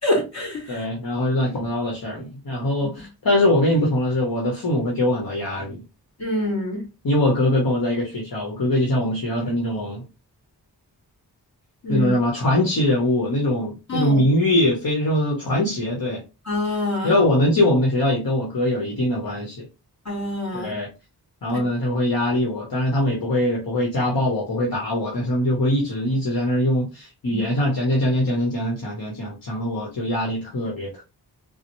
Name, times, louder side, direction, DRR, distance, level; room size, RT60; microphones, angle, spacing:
voice 1, 0.0-0.9 6.2-6.8 11.8-12.1 13.9-14.2 16.5-17.1 20.1-20.7 21.5-21.6 27.3-27.4, left 1 dB, 40° left, 2.2 m, -25 dB
voice 2, 0.7-5.8 7.0-10.0 11.9-16.2 17.0-19.6 20.5-20.9 21.4-31.0, left 1 dB, 60° left, 1.2 m, -22 dB
3.9 x 2.1 x 3.1 m
cardioid pair, 45°, 40 cm